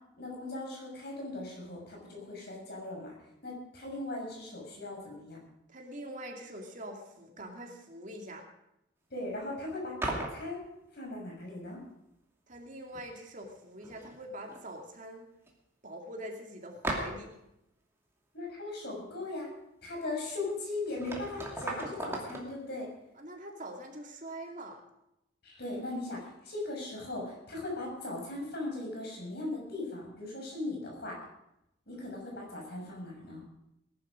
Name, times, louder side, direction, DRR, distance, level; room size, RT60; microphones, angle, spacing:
voice 1, 0.2-3.1 3.4-5.4 9.1-10.6 10.9-11.8 18.3-19.5 19.8-22.9 25.4-31.2 31.9-33.4, left 2 dB, 55° left, -1 dB, 6.2 m, -38 dB
voice 2, 5.7-8.4 12.5-15.3 15.8-17.3 23.2-24.8, right 1 dB, 40° right, 2 dB, 2.4 m, -44 dB
sound 1, 10.0-10.5 12.5-12.6 12.9-13.5 13.8-14.6 14.9-15.0 15.5-15.6 16.8-17.4 20.4-20.5 20.9-22.5, right 1 dB, 15° right, 2.6 m, -37 dB
19.5 x 11.5 x 5.1 m, 0.85 s
head